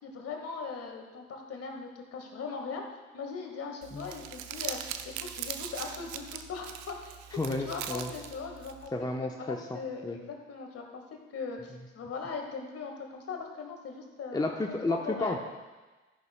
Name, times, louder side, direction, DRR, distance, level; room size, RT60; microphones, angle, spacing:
voice 1, 0.0-2.8 3.1-4.8 5.0-7.2 7.5-11.0 11.3-14.6 14.9-15.4, left 5 dB, 45° left, 2 dB, 1.9 m, -40 dB
Crumpling crinkling, 3.8-8.9, right 10 dB, 65° right, 0.7 m, -40 dB
voice 2, 7.3-8.1 8.9-9.8 10.0-10.2 14.3-15.4, left 2 dB, 10° left, 2 dB, 1.0 m, -32 dB
14.0 x 11.0 x 2.3 m, 1.2 s
figure-of-eight pair, 45°, 32 cm